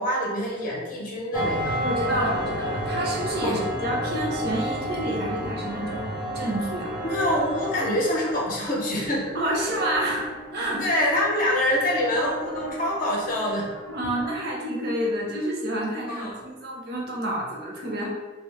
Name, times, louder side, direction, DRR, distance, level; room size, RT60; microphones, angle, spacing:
voice 1, 0.0-1.8 3.4-3.6 7.0-9.3 10.8-13.7 16.1-16.4, left 1 dB, 45° left, -4 dB, 0.6 m, -25 dB
sound 1, 1.3-8.4, equal, 25° right, 0.4 m, -30 dB
voice 2, 1.8-6.1 6.3-6.9 9.3-10.3 10.5-10.8 13.9-18.1, right 1 dB, 60° right, -2 dB, 0.7 m, -28 dB
sound 2, 2.2-14.3, right 1 dB, 85° right, 1.1 m, -39 dB
2.8 x 2.1 x 3.2 m, 1.3 s
head